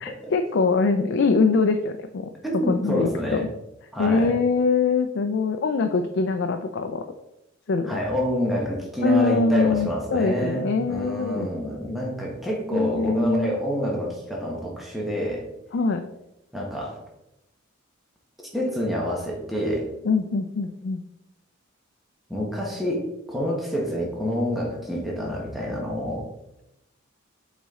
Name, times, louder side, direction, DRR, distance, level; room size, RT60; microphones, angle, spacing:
voice 1, 0.0-2.3 2.7-3.5 4.0-7.0 7.7-8.0 9.0-11.5 12.7-13.5 15.7-16.0 20.0-21.0, left 4 dB, 60° left, 6 dB, 0.4 m, -23 dB
voice 2, 2.4-3.4 3.9-4.3 7.9-15.5 16.5-17.0 18.5-19.9 22.3-26.3, equal, ahead, -3 dB, 1.2 m, -27 dB
7.2 x 4.1 x 3.7 m, 0.89 s
head